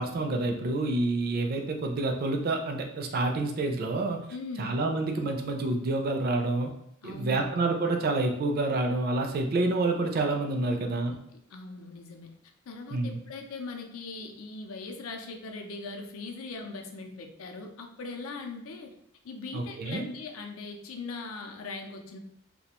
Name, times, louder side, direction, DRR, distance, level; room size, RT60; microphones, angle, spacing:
voice 1, 0.0-4.2 4.6-6.7 7.0-11.1 12.9-13.2 19.5-20.0, right 2 dB, 45° right, 3 dB, 0.4 m, -28 dB
voice 2, 4.3-4.8 7.0-7.5 10.6-10.8 11.3-12.3 12.7-18.9 19.2-22.2, left 3 dB, 85° left, 3 dB, 0.5 m, -40 dB
2.4 x 2.1 x 2.9 m, 0.75 s
head